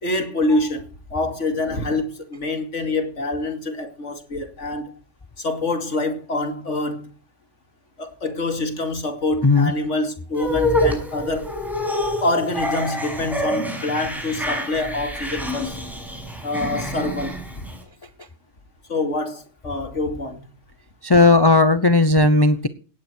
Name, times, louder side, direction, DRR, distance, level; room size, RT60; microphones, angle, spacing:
voice 1, 0.0-4.9 5.4-7.1 8.0-11.5 12.2-15.8 16.4-17.4 18.9-20.4, left 2 dB, 75° left, 2.9 m, -26 dB
sound 1, 10.3-17.8, left 1 dB, ahead, 6.4 m, -26 dB
voice 2, 21.0-22.7, left 2 dB, 20° left, 0.8 m, -15 dB
18.0 x 14.0 x 4.5 m
omnidirectional pair, 1.3 m